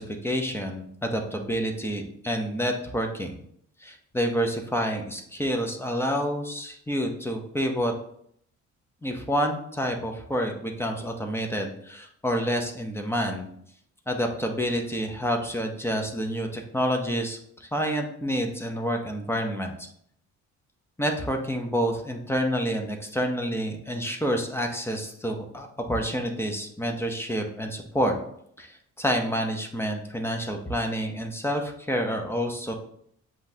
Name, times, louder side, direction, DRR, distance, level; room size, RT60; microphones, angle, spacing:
voice 1, 0.0-3.4 3.8-7.9 9.0-13.5 14.1-19.7 21.0-28.1 28.6-32.7, equal, 10° left, 3 dB, 0.7 m, -28 dB
7.3 x 2.5 x 2.7 m, 0.70 s
cardioid pair, 90°, 30 cm